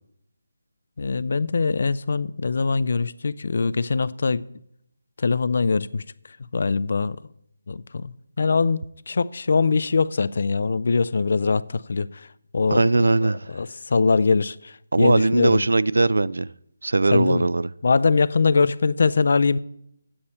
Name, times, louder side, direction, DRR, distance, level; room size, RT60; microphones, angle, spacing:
voice 1, 1.0-4.4 5.2-6.0 6.5-7.2 7.7-8.1 8.4-8.8 9.1-12.1 12.5-12.8 13.2-15.6 17.1-17.5 17.8-19.6, left 4 dB, 55° left, 0.3 m, -22 dB
voice 2, 12.7-13.5 14.9-16.5 16.8-17.7, right 2 dB, 85° right, 0.3 m, -20 dB
9.8 x 8.7 x 4.2 m
hypercardioid pair, 170°, 0 cm